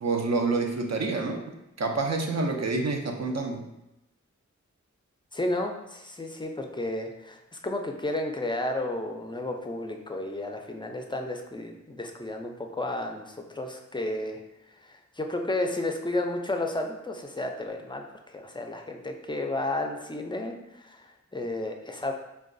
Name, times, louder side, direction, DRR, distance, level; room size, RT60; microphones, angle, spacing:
voice 1, 0.0-1.4 1.8-3.6, right 3 dB, 60° right, 3 dB, 0.5 m, -27 dB
voice 2, 5.3-14.4 14.8-22.1, left 2 dB, 15° left, 3 dB, 0.4 m, -32 dB
3.9 x 2.2 x 2.5 m, 0.89 s
wide cardioid pair, 45°, 30 cm